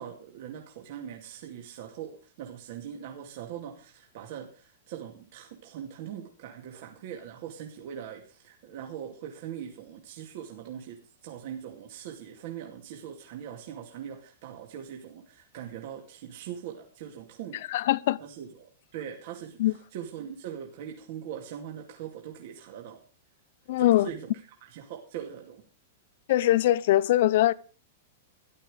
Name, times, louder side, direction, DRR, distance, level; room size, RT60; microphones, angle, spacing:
voice 1, 0.0-17.8 18.2-23.0 23.8-24.3 24.6-25.6, right 9 dB, 40° right, 2.3 m, -41 dB
voice 2, 17.7-18.2 19.6-19.7 23.7-24.1 26.3-27.5, left 14 dB, 45° left, 0.7 m, -22 dB
14.0 x 11.5 x 5.0 m
supercardioid pair, 175°, 0 cm